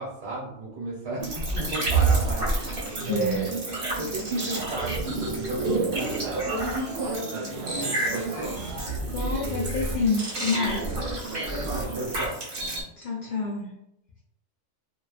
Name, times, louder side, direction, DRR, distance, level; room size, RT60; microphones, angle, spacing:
voice 1, 0.0-3.6 3.9-8.5 11.5-12.4, right 2 dB, 60° right, -5 dB, 1.1 m, -33 dB
sound 1, 1.2-12.8, right 3 dB, 45° right, 0.8 m, -29 dB
sound 2, 1.6-12.1, right 2 dB, 80° right, 1.0 m, -36 dB
voice 2, 3.1-3.5 9.0-10.9 13.0-13.7, left 3 dB, 65° left, -4 dB, 0.4 m, -28 dB
2.3 x 2.3 x 2.4 m, 0.78 s
omnidirectional pair, 1.3 m